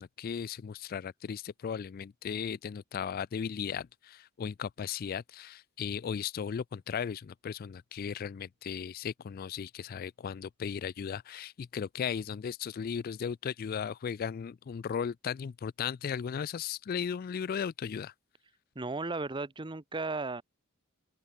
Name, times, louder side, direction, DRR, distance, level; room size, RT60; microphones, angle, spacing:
voice 1, 0.0-18.1, left 7 dB, 45° left, 0.3 m, -36 dB
voice 2, 18.7-20.4, right 3 dB, 25° right, 0.8 m, -35 dB
open air
head